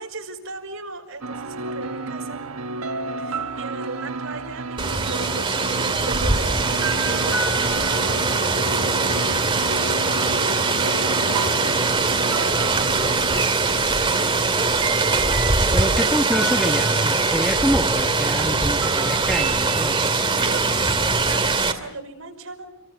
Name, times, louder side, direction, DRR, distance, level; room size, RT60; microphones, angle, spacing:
voice 1, 0.0-2.4 3.2-15.9 20.2-20.9 21.2-22.7, right 3 dB, 70° right, 4 dB, 5.5 m, -39 dB
sound 1, 1.2-17.8 18.8-20.5, right 3 dB, 90° right, 1.3 m, -31 dB
Rain, 4.8-21.7, right 3 dB, 25° right, 2.5 m, -22 dB
voice 2, 15.7-21.0, equal, ahead, 3 dB, 1.6 m, -27 dB
30.0 x 23.5 x 6.9 m, 0.77 s
head